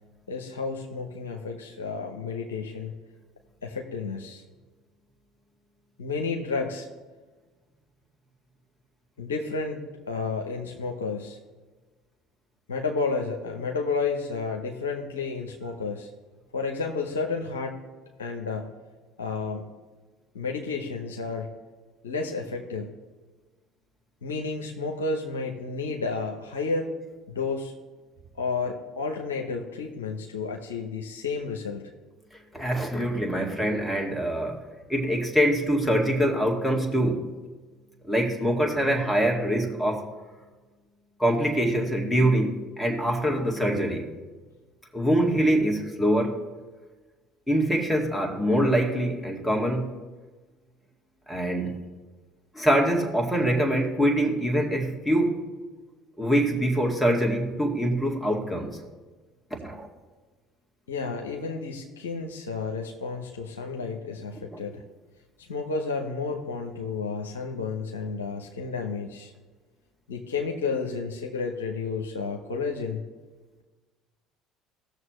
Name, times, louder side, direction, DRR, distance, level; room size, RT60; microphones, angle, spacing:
voice 1, 0.3-2.9 3.6-4.4 6.0-6.9 9.2-11.4 12.7-16.1 16.5-17.8 18.2-18.7 19.2-19.7 20.3-21.5 22.0-22.9 24.2-26.9 27.3-27.7 28.4-31.8 60.9-64.8 65.5-69.3 70.1-73.0, left 4 dB, 85° left, 2 dB, 0.8 m, -31 dB
voice 2, 32.5-34.6 34.9-37.2 38.1-40.1 41.2-44.1 44.9-46.4 47.5-49.9 51.3-51.8 52.5-55.4 56.2-58.8 59.6-59.9 64.5-64.6, right 1 dB, 5° left, 0 dB, 2.2 m, -24 dB
17.0 x 6.6 x 3.2 m, 1.3 s
hypercardioid pair, 65°, 0 cm